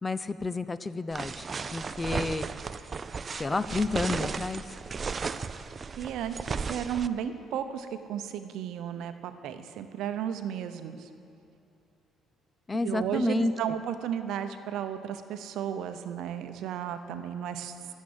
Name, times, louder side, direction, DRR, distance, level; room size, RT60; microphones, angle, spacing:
voice 1, 0.0-1.5 1.7-2.5 3.3-4.6 12.7-13.5, left 3 dB, 25° left, 14 dB, 0.5 m, -30 dB
sound 1, 1.1-7.1, right 5 dB, 40° right, 0.4 m, -35 dB
voice 2, 6.0-11.1 12.8-17.9, right 9 dB, 80° right, 9 dB, 0.7 m, -34 dB
12.0 x 7.4 x 8.7 m, 2.6 s
supercardioid pair, 80°, 0 cm